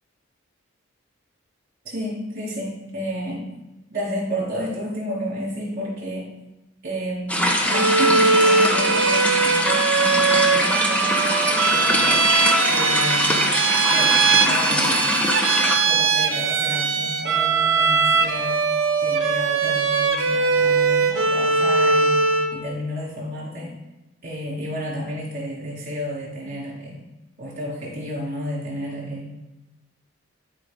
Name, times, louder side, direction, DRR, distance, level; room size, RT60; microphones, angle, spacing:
voice 1, 1.8-3.5 3.9-6.3 6.8-12.1 12.7-13.4 13.9-15.1 15.5-18.6 19.0-22.2 22.5-23.7 24.2-27.0 27.4-29.4, equal, 45° right, -4 dB, 3.2 m, -31 dB
sound 1, 7.3-15.8, left 1 dB, 5° left, 0.7 m, -22 dB
Bowed string instrument, 7.7-22.6, right 4 dB, 75° right, 0.8 m, -20 dB
12.5 x 4.8 x 3.7 m, 1.0 s
head